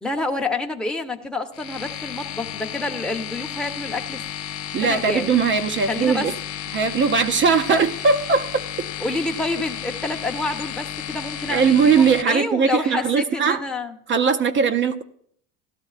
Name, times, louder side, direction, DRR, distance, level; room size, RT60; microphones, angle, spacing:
voice 1, 0.0-4.2 4.8-5.3 5.8-6.3 9.0-13.9, left 2 dB, ahead, 2 dB, 0.8 m, -28 dB
sound 1, 1.5-12.2, left 10 dB, 45° left, 0.7 m, -33 dB
voice 2, 4.7-6.3 6.7-8.9 11.5-13.6 14.1-15.0, right 5 dB, 35° right, 7 dB, 0.6 m, -20 dB
17.0 x 12.5 x 2.4 m, 0.66 s
cardioid pair, 120°, 35 cm